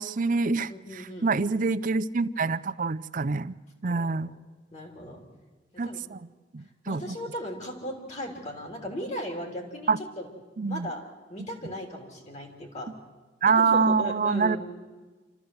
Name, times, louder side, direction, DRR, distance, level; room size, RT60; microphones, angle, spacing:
voice 1, 0.0-3.6 3.8-4.3 5.8-6.2 6.5-7.0 9.9-10.0 10.6-10.9 13.4-14.6, right 4 dB, 50° right, 15 dB, 0.5 m, -26 dB
voice 2, 0.7-1.7 3.9-4.2 4.7-5.2 5.7-6.0 6.9-10.3 10.7-11.0 11.3-12.9 13.5-14.6, equal, 40° left, 2 dB, 3.5 m, -37 dB
26.5 x 14.0 x 7.9 m, 1.3 s
head